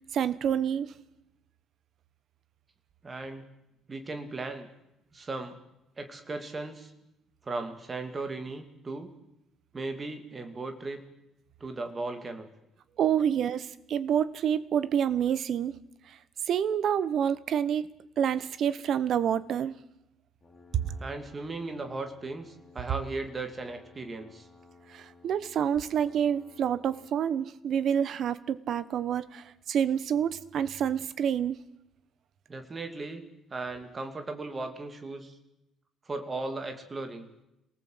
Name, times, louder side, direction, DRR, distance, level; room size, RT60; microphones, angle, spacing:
voice 1, 0.1-0.9 13.0-15.7 16.1-16.2 16.5-17.9 18.2-19.7 20.7-20.8 24.9-31.6, right 8 dB, 50° right, 16 dB, 1.1 m, -28 dB
voice 2, 3.0-3.5 3.9-4.7 5.1-5.6 6.0-6.9 7.4-9.1 9.7-11.1 11.6-12.5 21.0-24.5 32.5-33.2 33.5-35.4 36.1-37.3, right 3 dB, 20° right, 7 dB, 2.5 m, -37 dB
sound 1, 20.4-27.2, left 3 dB, 20° left, 4.5 m, -56 dB
27.0 x 19.0 x 7.9 m, 0.89 s
cardioid pair, 150°, 0 cm